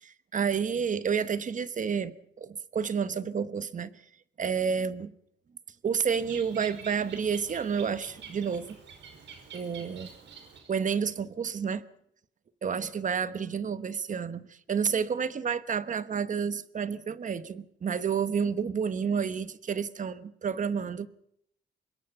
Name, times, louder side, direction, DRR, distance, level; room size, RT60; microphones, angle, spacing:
voice 1, 0.0-3.9 4.4-5.1 5.8-8.7 9.5-10.1 10.7-11.8 12.6-21.1, right 6 dB, 45° right, 1.1 m, -30 dB
Bird, 6.1-10.9, right 6 dB, 85° right, 5.2 m, -47 dB
25.0 x 21.5 x 5.6 m
wide cardioid pair, 130°, 18 cm